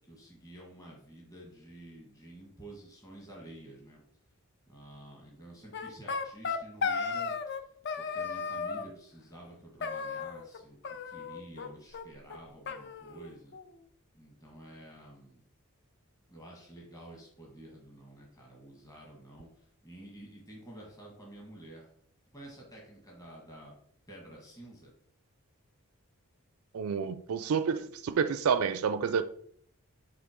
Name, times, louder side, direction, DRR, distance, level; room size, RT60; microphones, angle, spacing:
voice 1, 0.1-4.0 4.7-7.6 8.0-10.8 11.0-13.5 14.1-15.4 16.3-19.5 19.8-21.9 22.3-23.7 24.1-24.9, right 1 dB, 15° left, 1.5 m, -50 dB
sound 1, 5.7-7.6 7.9-8.9 9.8-10.6 10.8-11.7 11.9-12.0 12.3-12.4 12.7-13.7, left 5 dB, 50° left, 0.5 m, -35 dB
voice 2, 26.7-29.2, right 6 dB, 75° right, 0.4 m, -29 dB
5.9 x 3.3 x 4.9 m
head